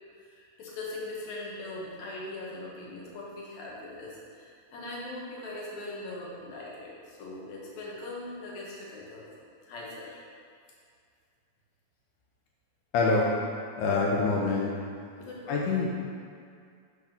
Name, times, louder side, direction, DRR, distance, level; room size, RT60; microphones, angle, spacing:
voice 1, 0.2-10.2 15.2-15.9, left 2 dB, 65° left, -5 dB, 2.4 m, -41 dB
voice 2, 12.9-13.3 13.8-14.7 15.5-15.9, left 3 dB, 85° left, -3 dB, 2.3 m, -25 dB
8.1 x 3.5 x 5.9 m, 2.2 s
omnidirectional pair, 3.6 m